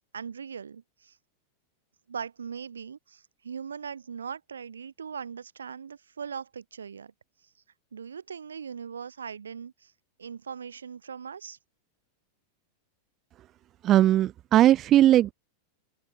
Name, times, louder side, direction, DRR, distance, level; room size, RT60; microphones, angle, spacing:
voice 1, 0.1-1.2 2.1-7.1 7.9-9.9 10.2-11.6, right 6 dB, 70° right, 2.7 m, -40 dB
voice 2, 13.8-15.3, right 13 dB, 30° right, 0.4 m, -19 dB
open air
figure-of-eight pair, 90°, 0 cm